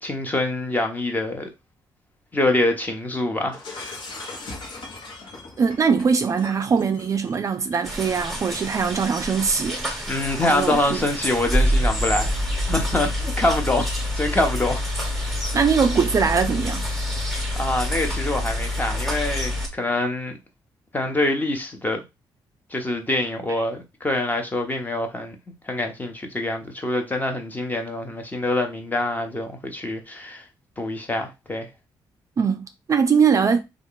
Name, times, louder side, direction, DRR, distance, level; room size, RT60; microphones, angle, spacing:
voice 1, 0.0-1.5 2.3-4.0 10.1-12.4 12.7-13.9 14.2-14.8 15.2-15.3 17.6-20.4 20.9-22.0 22.7-25.4 25.7-30.4 30.8-31.7, left 2 dB, 20° left, 0.9 m, -25 dB
Shatter, 3.5-10.9, left 3 dB, 65° left, 1.1 m, -41 dB
voice 2, 5.6-10.1 10.5-11.0 15.5-16.9 23.5-23.6 32.4-33.6, right 6 dB, 40° right, 0.3 m, -22 dB
sound 1, 7.8-19.7, left 1 dB, ahead, 1.2 m, -26 dB
3.0 x 2.4 x 3.7 m
cardioid pair, 90°, 9 cm